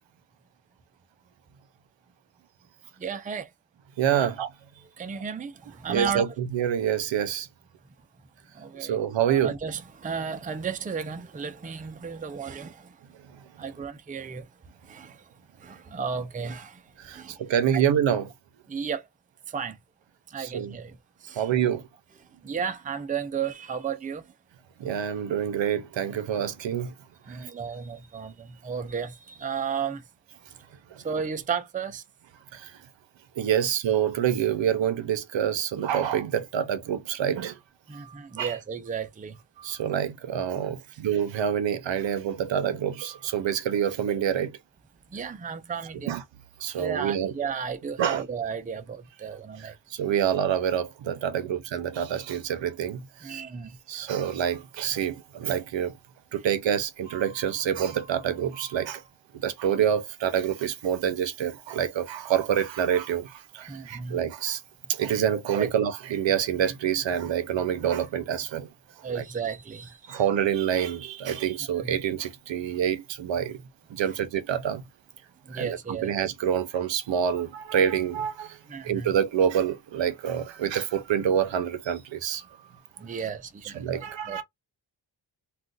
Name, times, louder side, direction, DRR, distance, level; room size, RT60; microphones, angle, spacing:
voice 1, 3.0-3.5 4.2-4.3 5.0-6.3 8.5-9.0 9.3-13.0 13.6-14.5 14.8-15.3 15.6-16.8 17.1-17.4 17.7-17.8 18.7-19.1 19.5-19.8 20.3-21.4 22.4-24.2 27.3-30.0 31.0-32.0 37.9-39.4 45.1-46.1 46.7-49.7 53.2-53.8 63.7-64.2 65.3-65.7 69.0-70.2 71.8-72.0 75.5-76.2 78.7-79.1 83.0-83.9 84.3-84.4, right 6 dB, 20° right, 0.4 m, -34 dB
voice 2, 4.0-4.5 5.9-7.5 8.7-9.5 13.3-13.4 17.0-18.3 20.4-20.8 21.3-21.9 24.8-26.9 27.3-27.5 30.9-31.0 32.5-32.8 33.4-37.6 37.9-38.6 39.6-44.6 46.1-46.2 46.6-47.3 48.0-48.2 49.6-53.4 53.9-55.9 56.3-59.0 59.3-64.6 64.9-68.7 69.1-69.2 70.1-73.6 73.9-74.8 75.5-78.6 78.8-82.5 83.1-83.2 83.7-84.4, right 9 dB, 75° right, 0.6 m, -27 dB
2.4 x 2.3 x 3.8 m
wide cardioid pair, 115°, 46 cm